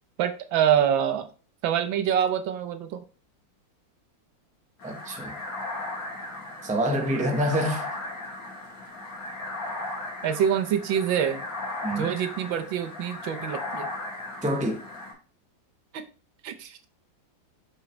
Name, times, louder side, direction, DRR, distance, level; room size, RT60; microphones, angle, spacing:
voice 1, 0.2-1.3 1.6-3.0 10.2-11.4 12.0-13.9 15.9-16.0 16.4-16.9, right 9 dB, 85° right, 1.6 m, -25 dB
sound 1, 4.8-15.1, left 2 dB, 80° left, 3.1 m, -36 dB
voice 2, 4.8-5.4 6.6-7.9 11.8-12.1 14.4-14.8, equal, 5° right, 0.6 m, -26 dB
6.5 x 5.8 x 3.2 m
omnidirectional pair, 2.1 m